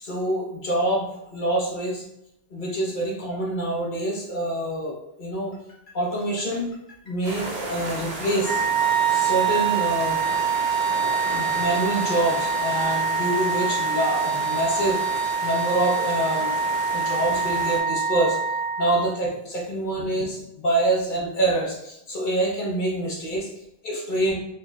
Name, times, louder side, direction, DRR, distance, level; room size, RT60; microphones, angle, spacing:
voice 1, 0.0-2.0 2.5-5.6 5.9-6.7 7.0-8.6 9.1-10.2 10.9-15.0 15.4-16.5 16.9-18.4 18.8-23.5 23.8-24.3, right 1 dB, 50° left, -2 dB, 1.1 m, -26 dB
sound 1, 7.2-17.8, right 2 dB, 75° right, 1.1 m, -34 dB
Wind instrument woodwind instrument, 8.4-19.2, right 5 dB, 30° right, 0.4 m, -25 dB
4.6 x 2.9 x 2.3 m, 0.81 s
omnidirectional pair, 1.1 m